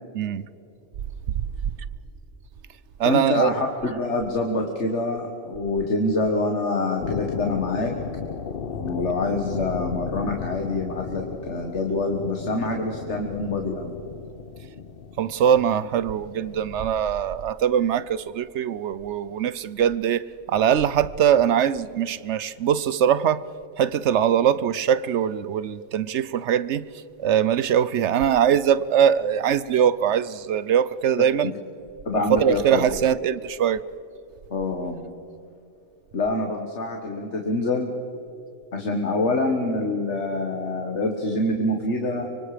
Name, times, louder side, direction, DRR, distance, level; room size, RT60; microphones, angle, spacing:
voice 1, 0.1-0.5 3.0-3.5 15.2-23.4 23.8-26.8 27.2-31.5 32.1-33.8, right 9 dB, 75° right, 1.0 m, -22 dB
voice 2, 3.1-7.9 8.8-13.9 31.4-31.5 32.1-32.8 34.5-35.0 36.1-37.9 38.7-42.3, left 2 dB, 75° left, 2.0 m, -26 dB
sound 1, 7.0-16.9, left 6 dB, 55° left, 1.0 m, -35 dB
25.0 x 25.0 x 5.1 m
omnidirectional pair, 1.2 m